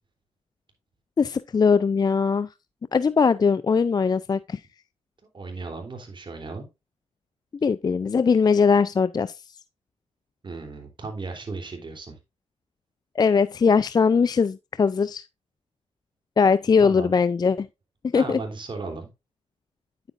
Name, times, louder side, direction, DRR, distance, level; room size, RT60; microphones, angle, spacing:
voice 1, 1.2-2.5 2.9-4.6 7.6-9.4 13.2-15.2 16.4-17.7 18.1-18.4, left 5 dB, 35° left, 0.4 m, -20 dB
voice 2, 5.3-6.7 10.4-12.2 16.8-17.1 18.1-19.1, right 3 dB, 40° right, 3.3 m, -35 dB
9.1 x 8.0 x 2.5 m
cardioid pair, 65°, 12 cm